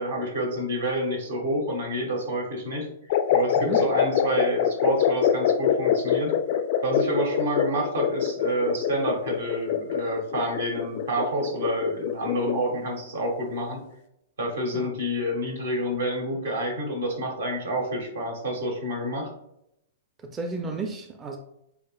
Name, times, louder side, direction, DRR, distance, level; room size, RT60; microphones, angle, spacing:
voice 1, 0.0-2.9 3.3-6.3 6.8-13.8 14.4-19.3, right 1 dB, 80° right, 0 dB, 1.5 m, -28 dB
sound 1, 3.1-12.7, left 9 dB, 55° left, 0.4 m, -24 dB
voice 2, 20.2-21.4, right 3 dB, 20° right, 4 dB, 0.4 m, -33 dB
6.7 x 2.5 x 2.3 m, 0.79 s
hypercardioid pair, 120°, 0 cm